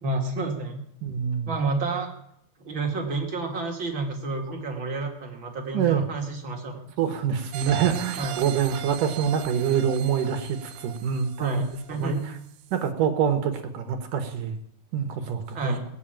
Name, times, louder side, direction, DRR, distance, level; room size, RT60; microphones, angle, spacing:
voice 1, 0.0-0.8 1.5-2.1 2.6-6.9 8.2-8.5 11.4-12.3 15.5-15.9, right 3 dB, 35° right, 0 dB, 2.2 m, -30 dB
voice 2, 1.0-1.5 5.7-6.0 7.0-11.6 12.0-12.3 12.7-14.6 14.9-15.8, right 7 dB, 60° right, 6 dB, 2.5 m, -26 dB
sound 1, 7.5-12.3 12.7-12.8, right 12 dB, 85° right, 3.1 m, -38 dB
19.5 x 8.0 x 9.0 m, 0.76 s
omnidirectional pair, 4.9 m